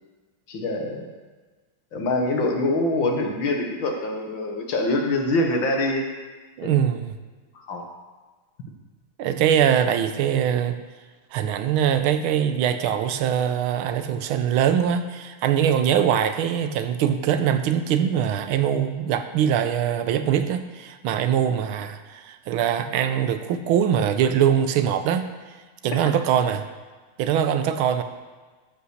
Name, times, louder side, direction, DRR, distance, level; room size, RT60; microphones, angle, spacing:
voice 1, 0.5-1.1 1.9-6.1 6.6-6.8 7.5-7.9 25.9-26.0, left 2 dB, 65° left, 2 dB, 2.1 m, -24 dB
voice 2, 6.6-7.2 9.2-10.8 11.3-25.3 25.8-26.6 27.2-28.0, right 9 dB, 85° right, 9 dB, 1.5 m, -22 dB
12.5 x 5.6 x 6.4 m, 1.3 s
omnidirectional pair, 2.3 m